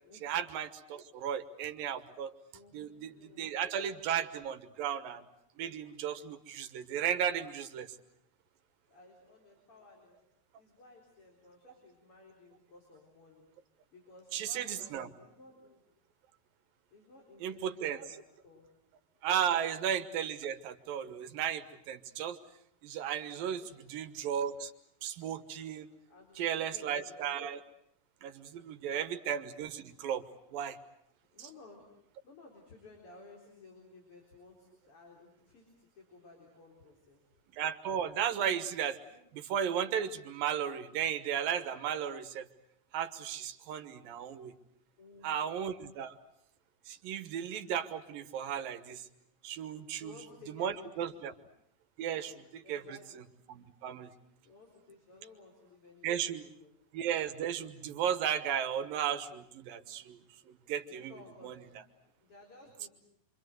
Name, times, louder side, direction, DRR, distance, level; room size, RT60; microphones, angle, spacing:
voice 1, 0.2-2.3 2.7-5.2 5.6-8.0 14.3-15.1 17.4-18.2 19.2-22.4 22.8-23.6 23.9-24.7 25.0-25.9 26.4-27.6 28.2-30.3 30.5-30.8 37.5-39.0 39.3-42.5 42.9-44.6 45.2-46.2 46.9-49.1 49.4-50.1 50.6-51.3 52.0-54.1 56.0-56.5 56.9-61.1 61.4-61.7, right 9 dB, 85° right, 9 dB, 3.1 m, -35 dB
voice 2, 2.5-3.5 8.9-10.2 10.6-13.5 13.9-15.8 16.9-18.7 23.6-23.8 26.1-27.3 28.6-29.1 31.3-31.8 32.2-37.2 39.1-39.3 45.0-45.5 49.9-51.2 52.0-52.3 52.6-53.2 54.4-56.1 56.4-56.7 60.9-61.5 62.0-62.9, left 3 dB, 40° left, 0 dB, 4.8 m, -56 dB
26.5 x 25.5 x 8.0 m, 0.72 s
omnidirectional pair, 3.9 m